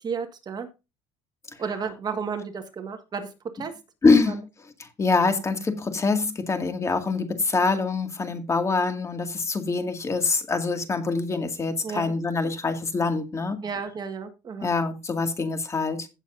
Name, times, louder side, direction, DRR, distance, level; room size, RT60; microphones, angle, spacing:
voice 1, 0.0-0.7 1.6-3.8 4.3-4.4 11.8-12.1 13.6-14.7, right 5 dB, 30° right, 1.6 m, -32 dB
voice 2, 4.0-4.5 4.8-13.6 14.6-16.1, left 4 dB, 20° left, 2.0 m, -24 dB
16.5 x 7.2 x 2.6 m
cardioid pair, 130°, 13 cm